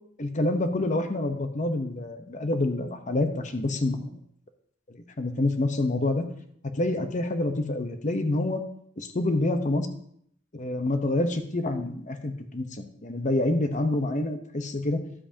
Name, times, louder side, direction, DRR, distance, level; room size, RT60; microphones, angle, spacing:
voice 1, 0.2-4.2 4.9-6.3 6.7-8.6 9.0-9.9 10.5-15.0, left 2 dB, 40° left, 7 dB, 0.9 m, -27 dB
12.5 x 7.7 x 2.8 m, 0.68 s
head